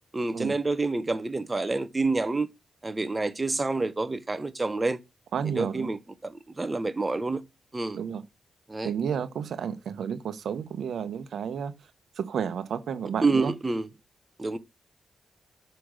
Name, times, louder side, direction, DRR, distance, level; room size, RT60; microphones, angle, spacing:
voice 1, 0.1-2.5 2.8-5.0 5.4-7.4 7.7-8.0 8.7-8.9 13.2-13.9 14.4-14.6, right 3 dB, 25° right, 1.0 m, -28 dB
voice 2, 5.3-5.9 7.9-8.2 8.8-11.7 12.2-13.5, right 7 dB, 75° right, 0.9 m, -31 dB
6.9 x 5.1 x 6.2 m
cardioid pair, 70°, 0 cm